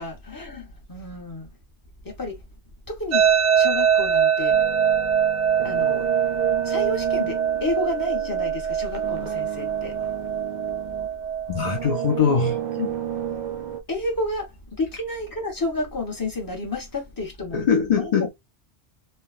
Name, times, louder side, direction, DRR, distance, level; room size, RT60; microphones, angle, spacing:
voice 1, 0.0-1.5 2.0-2.4 2.9-4.6 5.6-6.0 6.6-9.9 12.8-12.9 13.9-17.6 17.9-18.3, left 2 dB, 20° left, 0.9 m, -31 dB
sound 1, 3.1-12.2, right 8 dB, 90° right, 0.9 m, -23 dB
sound 2, 4.5-11.2 11.6-13.8, right 10 dB, 60° right, 0.5 m, -32 dB
voice 2, 11.5-12.6 17.5-18.3, left 6 dB, 60° left, 0.4 m, -21 dB
3.4 x 2.1 x 2.4 m
omnidirectional pair, 1.2 m